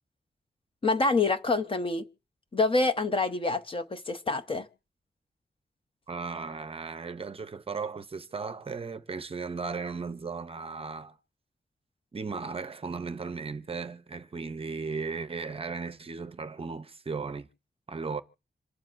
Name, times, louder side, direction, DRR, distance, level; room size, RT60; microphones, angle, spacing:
voice 1, 0.8-2.1 2.5-4.7, left 3 dB, 30° left, 0.7 m, -26 dB
voice 2, 6.1-11.2 12.1-17.5 17.9-18.2, right 4 dB, 35° right, 0.6 m, -36 dB
27.0 x 12.0 x 2.5 m
wide cardioid pair, 175°, 17 cm